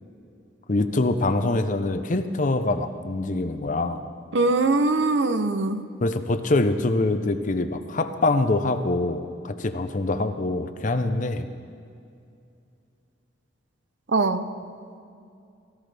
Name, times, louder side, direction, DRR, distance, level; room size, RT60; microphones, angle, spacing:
voice 1, 0.7-4.0 6.0-11.5, left 2 dB, 40° left, 9 dB, 0.6 m, -24 dB
voice 2, 4.3-5.9 14.1-14.4, right 3 dB, 70° right, 10 dB, 0.7 m, -22 dB
17.5 x 14.0 x 3.4 m, 2.5 s
head